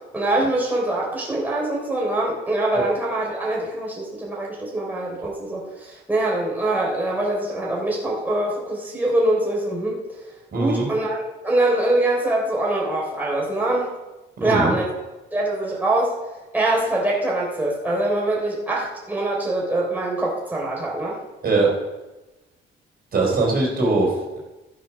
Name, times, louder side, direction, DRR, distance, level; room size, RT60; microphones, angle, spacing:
voice 1, 0.1-10.0 10.5-13.9 14.4-14.9 15.3-16.1 16.5-21.2, right 1 dB, 10° right, -3 dB, 3.6 m, -23 dB
voice 2, 10.5-10.9 14.4-14.7 21.4-21.7 23.1-24.4, right 3 dB, 50° right, -2 dB, 4.1 m, -21 dB
13.5 x 6.4 x 6.0 m, 1.1 s
cardioid pair, 90°, 20 cm